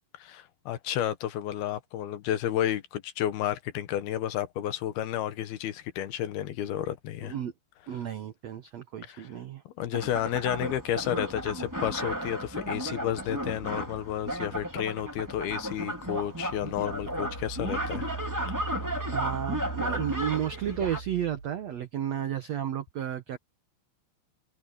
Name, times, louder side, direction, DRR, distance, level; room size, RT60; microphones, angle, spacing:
voice 1, 0.1-7.3 9.1-9.3 9.8-18.1 18.5-18.6, left 11 dB, 70° left, 3.0 m, -31 dB
voice 2, 7.9-9.6 19.1-23.4, right 10 dB, 80° right, 1.5 m, -32 dB
sound 1, 9.9-21.0, equal, 5° right, 2.3 m, -34 dB
Engine, 15.8-21.8, right 3 dB, 60° right, 7.7 m, -40 dB
omnidirectional pair, 4.7 m